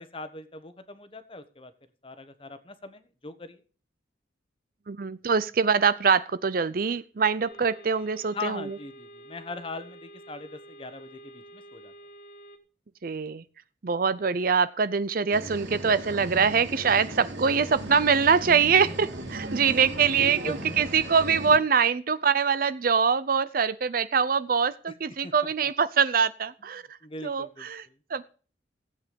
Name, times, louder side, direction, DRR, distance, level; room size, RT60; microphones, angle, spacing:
voice 1, 0.0-1.7 2.0-3.6 8.3-11.9 19.6-19.8 20.2-21.0 24.9-25.0 25.2-25.7 27.0-28.0, left 2 dB, 30° left, 11 dB, 1.2 m, -40 dB
voice 2, 4.9-8.6 13.0-13.4 13.8-26.8 27.2-28.3, right 6 dB, 50° right, 15 dB, 0.5 m, -24 dB
sound 1, 7.4-12.6, right 1 dB, 50° left, 1.7 m, -49 dB
sound 2, 15.3-21.6, right 1 dB, 85° right, 3.0 m, -37 dB
15.5 x 8.3 x 5.2 m, 0.39 s
head